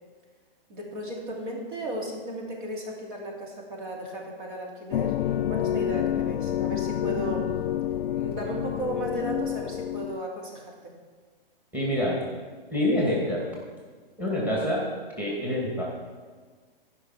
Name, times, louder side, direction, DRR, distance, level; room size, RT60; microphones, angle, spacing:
voice 1, 0.7-7.5 8.1-10.9, right 1 dB, 55° right, -1 dB, 2.9 m, -35 dB
sound 1, 4.9-10.2, left 11 dB, 70° left, 0.5 m, -28 dB
voice 2, 11.7-12.2 12.7-13.5 14.2-14.9 15.2-15.8, left 1 dB, 5° right, -4 dB, 2.3 m, -26 dB
14.5 x 5.7 x 5.9 m, 1.5 s
hypercardioid pair, 140°, 29 cm